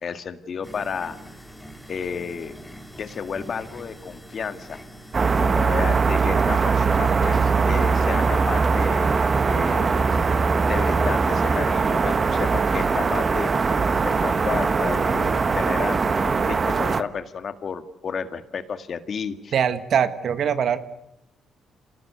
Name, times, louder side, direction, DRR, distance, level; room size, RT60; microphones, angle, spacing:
voice 1, 0.0-1.2 1.9-2.6 3.0-4.8 5.4-9.1 9.5-10.1 10.7-13.5 14.0-19.5, left 6 dB, 50° left, 9 dB, 2.0 m, -32 dB
sound 1, 0.6-16.2, equal, ahead, 2.4 m, -43 dB
sound 2, 5.1-17.0, right 4 dB, 35° right, 1.3 m, -21 dB
voice 2, 19.5-20.8, right 8 dB, 60° right, 11 dB, 1.7 m, -22 dB
27.5 x 19.5 x 8.3 m, 0.82 s
cardioid pair, 90°, 0 cm